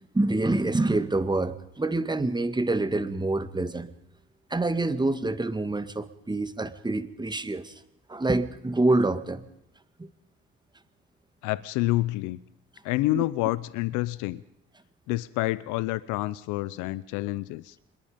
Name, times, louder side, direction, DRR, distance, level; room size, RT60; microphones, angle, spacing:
voice 1, 0.1-3.9 4.5-7.7 8.1-9.5 10.0-10.1 13.1-13.2, right 2 dB, 15° right, 12 dB, 2.0 m, -26 dB
voice 2, 11.4-12.4 12.8-14.4 15.1-17.8, left 18 dB, 85° left, 18 dB, 0.8 m, -28 dB
25.5 x 21.5 x 5.2 m, 0.85 s
supercardioid pair, 70°, 30 cm